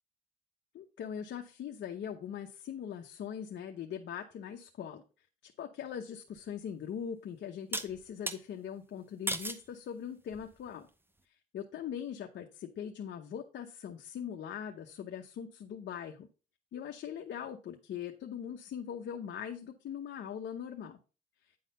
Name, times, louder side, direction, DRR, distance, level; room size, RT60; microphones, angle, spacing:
voice 1, 0.7-5.0 5.4-10.9 11.3-16.3 16.7-21.0, left 8 dB, 65° left, 3 dB, 0.9 m, -41 dB
sound 1, 6.4-6.5 7.7-8.4 9.3-9.7 10.3-10.7, right 1 dB, 10° right, 0.8 m, -36 dB
9.4 x 4.0 x 5.4 m, 0.33 s
cardioid pair, 90°, 20 cm